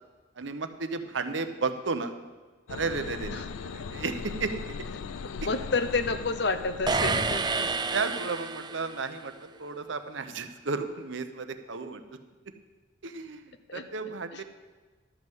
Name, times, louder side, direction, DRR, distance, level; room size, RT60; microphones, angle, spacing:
voice 1, 0.4-2.1 2.7-4.6 7.4-7.6 7.9-12.0 13.0-14.4, right 4 dB, 70° right, 9 dB, 0.8 m, -33 dB
sound 1, 2.7-8.0, left 5 dB, 90° left, 0.4 m, -39 dB
voice 2, 5.2-7.7 13.7-13.8 14.3-14.4, left 3 dB, 60° left, 10 dB, 0.7 m, -30 dB
sound 2, 6.9-9.1, right 4 dB, 20° right, 0.4 m, -29 dB
12.5 x 5.5 x 7.9 m, 1.3 s
head